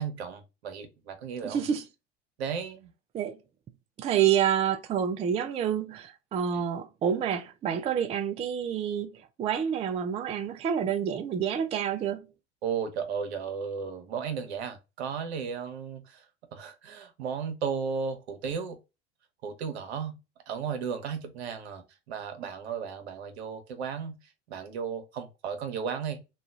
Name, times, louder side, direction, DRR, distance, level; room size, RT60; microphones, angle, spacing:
voice 1, 0.0-1.6 2.4-2.9 6.5-6.6 12.6-16.2 16.5-18.8 19.4-20.2 20.5-24.2 24.5-26.3, right 6 dB, 75° right, 0.9 m, -34 dB
voice 2, 1.4-1.8 3.1-3.4 4.0-12.3, right 8 dB, 20° right, 0.3 m, -28 dB
3.0 x 2.3 x 2.4 m
hypercardioid pair, 85°, 32 cm